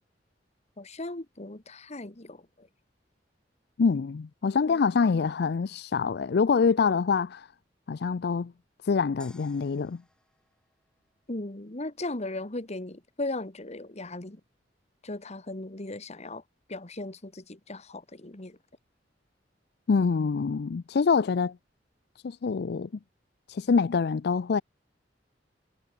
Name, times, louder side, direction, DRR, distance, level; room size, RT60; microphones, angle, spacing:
voice 1, 0.8-2.7 4.7-4.8 11.3-14.4 15.0-16.4 16.7-18.6, left 2 dB, 40° left, 1.8 m, -37 dB
voice 2, 3.8-7.5 7.9-8.5 8.8-10.0 19.9-21.6 22.2-22.9 23.5-24.6, left 5 dB, 60° left, 0.4 m, -25 dB
sound 1, 9.2-11.6, left 1 dB, 5° left, 5.4 m, -56 dB
head